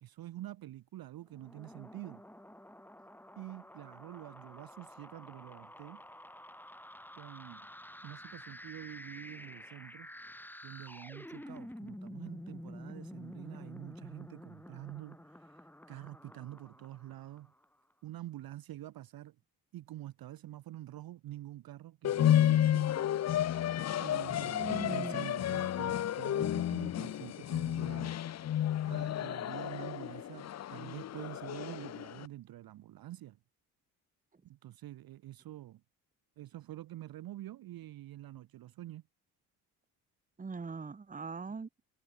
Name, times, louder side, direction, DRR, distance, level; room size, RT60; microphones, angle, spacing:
voice 1, 0.0-2.2 3.4-6.0 7.1-7.7 8.0-10.1 10.6-17.5 18.0-19.4 19.7-22.9 24.0-28.1 28.8-33.4 34.4-35.8 36.4-39.0 41.5-41.6, right 14 dB, 50° right, 0.7 m, -47 dB
sound 1, 1.3-17.6, left 1 dB, 5° left, 3.2 m, -50 dB
sound 2, 22.0-32.3, left 11 dB, 35° left, 0.6 m, -31 dB
voice 2, 24.5-25.3 40.4-41.7, right 4 dB, 15° right, 1.0 m, -40 dB
hypercardioid pair, 60°, 46 cm